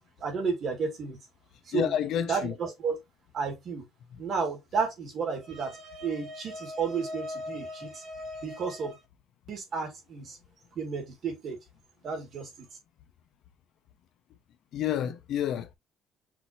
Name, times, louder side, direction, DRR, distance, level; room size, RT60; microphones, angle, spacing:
voice 1, 0.2-1.2 1.7-1.9 2.3-3.0 3.3-3.9 4.2-9.0 9.5-10.4 10.8-11.6 12.0-12.7, right 5 dB, 45° right, 2.3 m, -32 dB
voice 2, 1.7-2.5 14.7-15.7, left 10 dB, 60° left, 0.8 m, -29 dB
5.9 x 3.2 x 2.8 m
cardioid pair, 145°, 0 cm